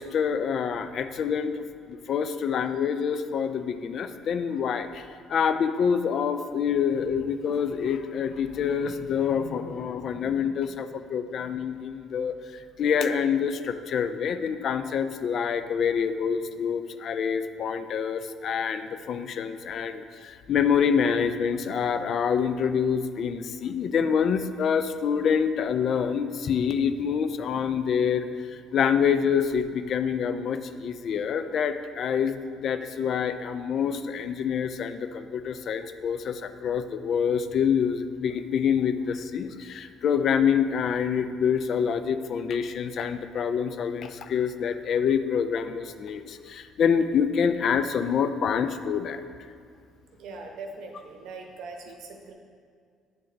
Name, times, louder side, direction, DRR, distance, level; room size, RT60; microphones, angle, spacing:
voice 1, 0.0-49.2, left 7 dB, 60° left, 10 dB, 0.3 m, -26 dB
voice 2, 50.2-52.3, right 3 dB, 70° right, 3 dB, 0.7 m, -41 dB
8.6 x 3.8 x 3.2 m, 2.1 s
hypercardioid pair, 60°, 0 cm